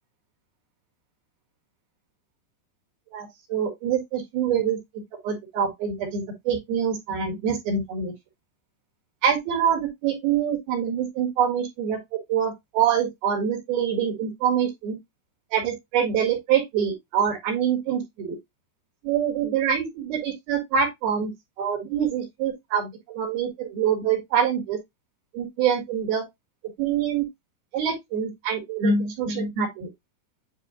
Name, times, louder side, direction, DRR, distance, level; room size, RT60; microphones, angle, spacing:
voice 1, 3.1-4.8 5.2-8.1 9.2-12.0 12.3-15.0 15.5-18.4 19.0-21.3 21.6-24.8 25.3-26.2 26.8-27.3 27.7-29.9, right 7 dB, 65° right, 3.7 m, -25 dB
9.4 x 4.4 x 2.4 m
omnidirectional pair, 4.8 m